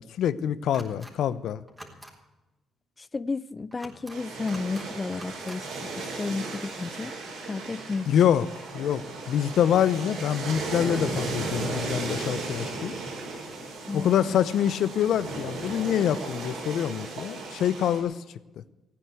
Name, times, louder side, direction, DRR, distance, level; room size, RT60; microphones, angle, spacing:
voice 1, 0.0-1.6 8.1-8.5 8.7-9.0 9.3-12.9 13.9-18.2, left 9 dB, 75° left, 0.7 m, -25 dB
sound 1, 0.7-1.1 1.7-2.1 3.7-4.2 4.5-4.9 5.1-5.6, right 1 dB, 10° right, 3.8 m, -45 dB
voice 2, 3.0-7.1 7.4-8.4 13.9-14.2, left 4 dB, 25° left, 0.5 m, -33 dB
sound 2, 4.1-18.0, right 3 dB, 85° right, 5.3 m, -35 dB
16.0 x 9.6 x 8.1 m
cardioid pair, 90°, 0 cm